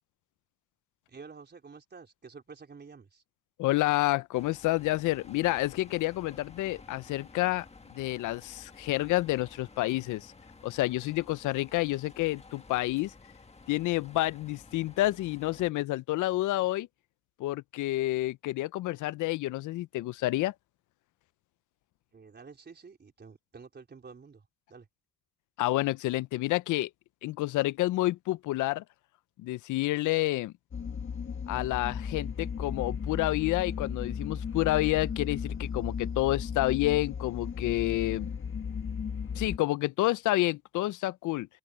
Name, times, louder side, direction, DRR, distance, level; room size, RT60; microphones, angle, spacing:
voice 1, 1.1-3.2 22.1-24.9, right 5 dB, 35° right, 4.1 m, -50 dB
voice 2, 3.6-10.3 10.6-13.1 13.7-16.9 17.4-20.5 25.6-26.9 27.2-28.8 29.4-30.5 31.5-38.3 39.4-41.5, left 17 dB, 80° left, 0.5 m, -29 dB
sound 1, 4.3-15.7, left 3 dB, 20° left, 1.7 m, -53 dB
sound 2, 30.7-39.6, left 6 dB, 40° left, 1.7 m, -35 dB
cardioid pair, 90°, 30 cm